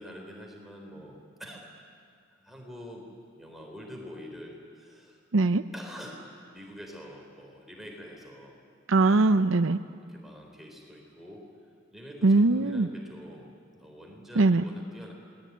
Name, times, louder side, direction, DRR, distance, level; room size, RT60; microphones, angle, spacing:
voice 1, 0.0-1.6 2.4-3.1 3.4-5.2 5.7-6.2 6.5-8.5 10.1-11.5 11.9-13.5 13.8-15.1, equal, ahead, 0 dB, 4.0 m, -45 dB
voice 2, 5.3-5.6 8.9-9.8 12.2-12.9 14.4-14.6, right 3 dB, 85° right, 10 dB, 0.7 m, -21 dB
27.5 x 20.0 x 9.5 m, 2.3 s
head